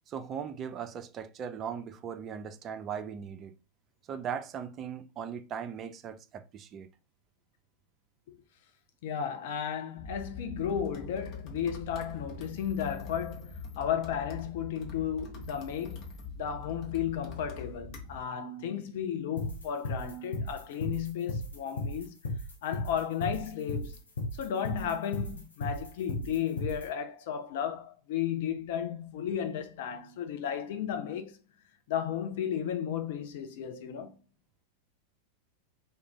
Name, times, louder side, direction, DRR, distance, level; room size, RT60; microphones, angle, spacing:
voice 1, 0.1-3.5 4.1-6.9, right 7 dB, 30° right, 0.3 m, -38 dB
voice 2, 9.0-22.2 22.6-24.0 24.4-31.4 31.9-34.2, left 9 dB, 55° left, 0.4 m, -34 dB
sound 1, 10.0-18.2, left 3 dB, 35° left, 0.8 m, -44 dB
sound 2, 19.4-26.8, left 2 dB, 70° left, 0.8 m, -34 dB
2.4 x 2.2 x 3.1 m
figure-of-eight pair, 90°, 0 cm